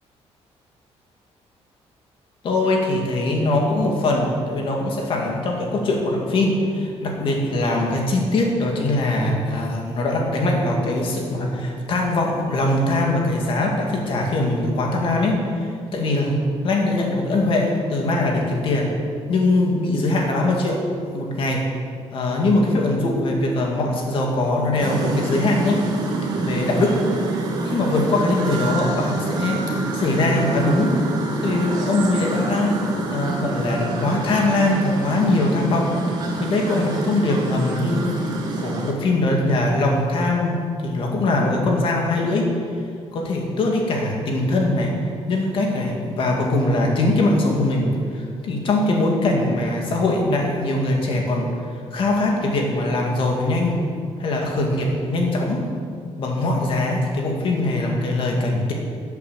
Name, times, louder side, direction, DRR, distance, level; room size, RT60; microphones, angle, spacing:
voice 1, 2.4-16.4 16.6-18.9 19.3-20.9 21.1-21.7 22.1-25.8 26.4-27.0 27.6-29.6 29.9-30.9 31.4-32.8 33.1-35.9 36.1-42.5 43.1-44.9 45.3-51.5 51.9-53.8 54.2-55.6 56.2-58.7, left 2 dB, 50° left, 0 dB, 2.4 m, -22 dB
sound 1, 24.8-38.9, right 2 dB, 35° right, 1.9 m, -26 dB
14.5 x 8.3 x 6.5 m, 2.2 s
cardioid pair, 170°, 11 cm